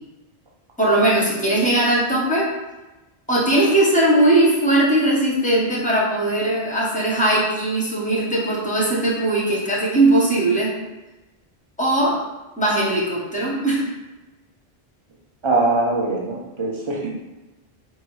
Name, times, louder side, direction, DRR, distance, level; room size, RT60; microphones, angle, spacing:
voice 1, 0.8-2.5 3.3-10.7 11.8-12.2 12.6-13.8, right 1 dB, 10° left, -4 dB, 0.9 m, -19 dB
voice 2, 15.4-17.1, right 2 dB, 35° right, -2 dB, 0.6 m, -22 dB
4.2 x 2.7 x 3.1 m, 1.1 s
omnidirectional pair, 1.1 m